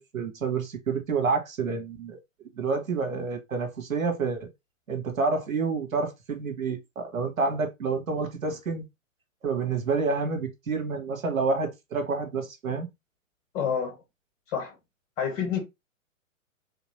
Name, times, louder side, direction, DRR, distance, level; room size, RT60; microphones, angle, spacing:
voice 1, 0.0-2.2 2.6-4.5 4.9-8.9 9.4-12.9, right 4 dB, 90° right, 1.3 m, -28 dB
voice 2, 13.5-14.0 14.5-14.7 15.2-15.6, left 7 dB, 35° left, 2.2 m, -28 dB
3.4 x 2.9 x 3.1 m
hypercardioid pair, 130°, 40 cm